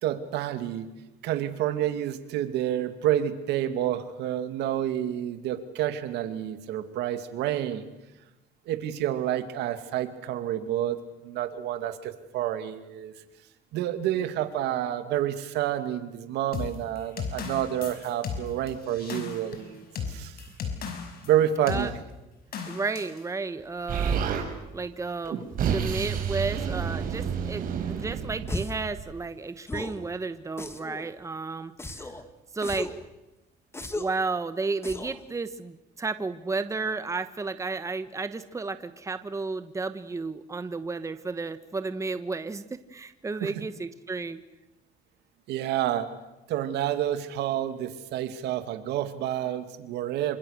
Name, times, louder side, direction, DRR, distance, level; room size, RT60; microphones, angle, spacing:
voice 1, 0.0-0.9 1.2-7.9 8.7-13.1 13.7-20.4 21.3-21.9 43.4-43.5 45.5-46.1 46.5-50.4, right 11 dB, 80° right, 9 dB, 2.4 m, -29 dB
sound 1, 16.5-21.3 21.7-21.9 22.5-23.2, left 6 dB, 65° left, 5.7 m, -35 dB
voice 2, 22.7-24.2 24.7-25.4 25.7-32.1 32.5-32.9 33.9-44.4, right 3 dB, 20° right, 11 dB, 1.2 m, -32 dB
Explosion, 23.9-24.5 25.2-29.1, right 7 dB, 55° right, 5.8 m, -29 dB
sound 2, 28.5-28.9 29.7-30.0 30.6-31.1 31.8-32.2 32.6-33.0 33.7-34.2 34.8-35.2, left 2 dB, 15° left, 2.2 m, -35 dB
27.0 x 25.5 x 6.6 m, 1.0 s
cardioid pair, 110°, 17 cm